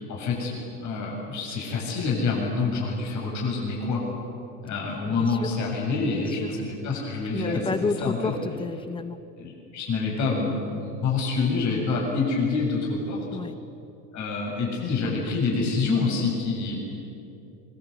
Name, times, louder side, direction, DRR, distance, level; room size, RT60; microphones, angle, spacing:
voice 1, 0.0-4.0 4.6-7.6 8.0-8.3 9.4-13.2 14.1-16.8, left 4 dB, 45° left, -2 dB, 7.8 m, -27 dB
voice 2, 5.2-5.5 6.1-6.5 7.3-9.2 13.3-13.6, left 4 dB, 10° left, 12 dB, 1.1 m, -31 dB
24.5 x 23.0 x 8.4 m, 2.7 s
supercardioid pair, 120°, 41 cm